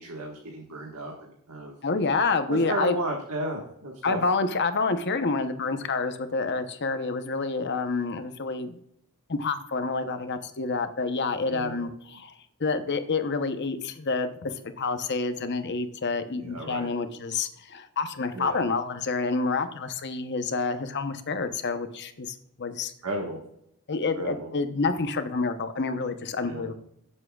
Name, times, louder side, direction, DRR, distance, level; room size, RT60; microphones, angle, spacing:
voice 1, 0.0-1.8 2.5-4.2 11.5-11.8 16.3-16.9 18.3-18.6 23.0-23.4 24.2-24.5 26.5-26.7, right 1 dB, 90° right, 0 dB, 1.6 m, -34 dB
voice 2, 1.8-3.0 4.0-8.8 9.3-12.3 12.6-22.9 23.9-26.7, left 4 dB, 50° left, 9 dB, 0.9 m, -28 dB
16.0 x 7.5 x 2.4 m, 0.74 s
head